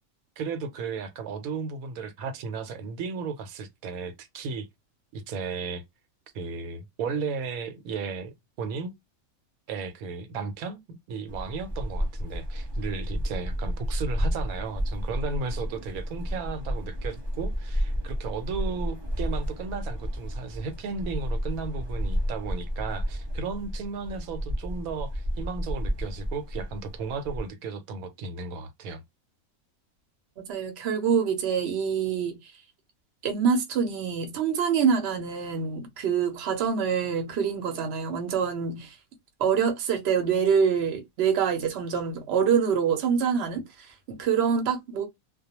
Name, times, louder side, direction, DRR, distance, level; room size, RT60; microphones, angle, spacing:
voice 1, 0.4-4.7 5.1-5.8 6.3-8.9 9.7-10.8 11.1-29.0, right 5 dB, 85° right, 1.0 m, -34 dB
sound 1, 11.3-27.5, equal, 30° right, 0.5 m, -31 dB
voice 2, 30.4-32.5 33.2-39.0 39.4-45.0, right 6 dB, 60° right, 0.8 m, -26 dB
2.3 x 2.1 x 2.8 m
omnidirectional pair, 1.5 m